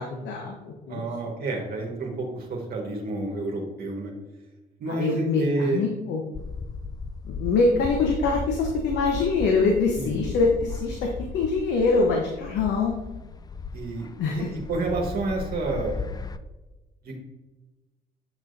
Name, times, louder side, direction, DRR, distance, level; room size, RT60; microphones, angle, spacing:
voice 1, 0.0-1.0 4.9-6.2 7.2-11.1 11.3-12.9 14.2-14.5, left 3 dB, 80° left, 1 dB, 0.9 m, -24 dB
voice 2, 0.9-4.1 4.8-5.9 10.0-10.2 13.7-14.1 14.3-15.9 17.0-17.2, right 3 dB, 60° right, 0 dB, 1.4 m, -29 dB
sound 1, 6.3-16.4, left 4 dB, 20° left, 0.4 m, -36 dB
7.6 x 6.0 x 2.6 m, 1.1 s
supercardioid pair, 70°, 18 cm